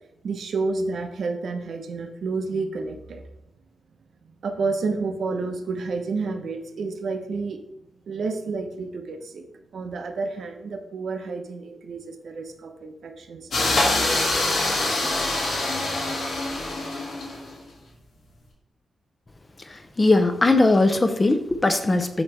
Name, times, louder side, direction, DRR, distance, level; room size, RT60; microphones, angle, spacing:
voice 1, 0.2-3.2 4.2-7.6 8.1-9.5 9.7-14.4, right 3 dB, 60° right, 5 dB, 0.8 m, -30 dB
sound 1, 13.5-17.5, left 2 dB, 65° left, 2.7 m, -24 dB
voice 2, 19.7-22.2, left 2 dB, 20° left, 8 dB, 0.5 m, -20 dB
7.8 x 3.2 x 6.2 m, 0.85 s
wide cardioid pair, 150°, 0 cm